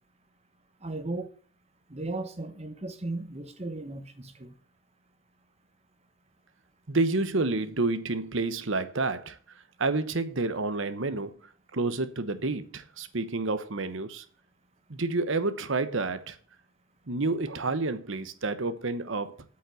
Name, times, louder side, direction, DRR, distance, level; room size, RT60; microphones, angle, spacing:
voice 1, 0.8-1.3 1.9-4.5, right 2 dB, 30° right, 1.1 m, -36 dB
voice 2, 6.9-9.4 9.8-11.3 11.7-14.2 14.9-16.4 17.1-19.4, right 3 dB, 65° right, 1.0 m, -29 dB
8.4 x 5.5 x 7.7 m
head